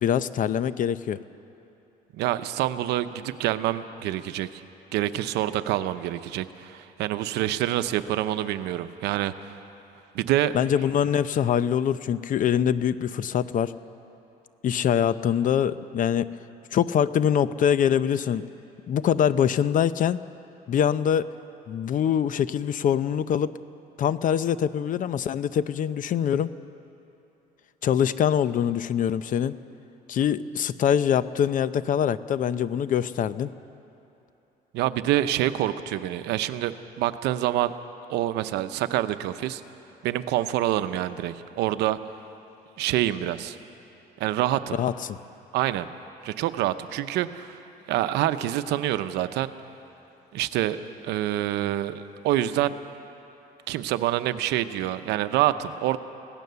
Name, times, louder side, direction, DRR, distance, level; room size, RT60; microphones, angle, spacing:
voice 1, 0.0-1.2 10.5-13.7 14.6-16.3 16.7-18.4 18.9-20.2 20.7-21.3 21.7-23.5 24.0-26.5 27.8-29.5 30.1-33.5 44.8-45.2, left 9 dB, 50° left, 15 dB, 0.7 m, -24 dB
voice 2, 2.1-4.6 4.9-9.6 10.1-10.5 34.7-37.7 38.1-39.6 40.0-42.0 42.8-43.6 44.2-44.8 45.5-45.9 46.2-47.6 47.9-49.5 50.3-52.7 53.7-56.0, right 13 dB, 85° right, 11 dB, 0.8 m, -26 dB
25.5 x 17.5 x 6.9 m, 2.9 s
cardioid pair, 110°, 17 cm